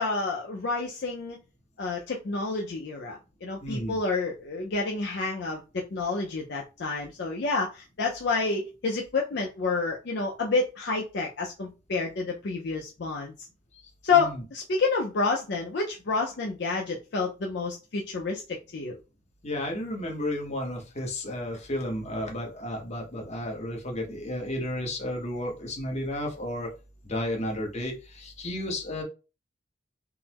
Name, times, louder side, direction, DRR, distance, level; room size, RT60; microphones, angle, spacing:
voice 1, 0.0-1.4 1.8-13.3 14.0-19.0, left 4 dB, 60° left, 0 dB, 0.5 m, -29 dB
voice 2, 3.6-4.0 14.1-14.4 19.4-26.7 27.0-29.0, left 1 dB, 35° left, 0 dB, 0.9 m, -32 dB
3.6 x 2.0 x 2.9 m, 0.30 s
head